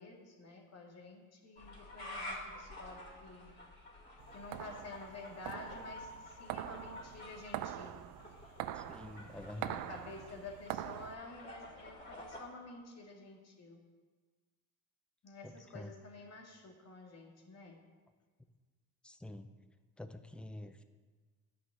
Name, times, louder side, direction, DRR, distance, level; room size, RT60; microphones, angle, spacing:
voice 1, 0.0-3.6 4.3-8.0 9.2-13.8 15.2-17.8, left 2 dB, 45° left, 1 dB, 2.1 m, -50 dB
sound 1, 1.6-12.4, left 1 dB, 25° left, 3.5 m, -50 dB
sound 2, 4.2-11.2, right 12 dB, 70° right, 0.6 m, -44 dB
voice 2, 8.7-9.9 15.4-15.9 19.0-19.5 20.0-20.8, left 1 dB, 5° left, 9 dB, 0.6 m, -47 dB
9.4 x 5.8 x 7.3 m, 1.4 s
cardioid pair, 100°, 36 cm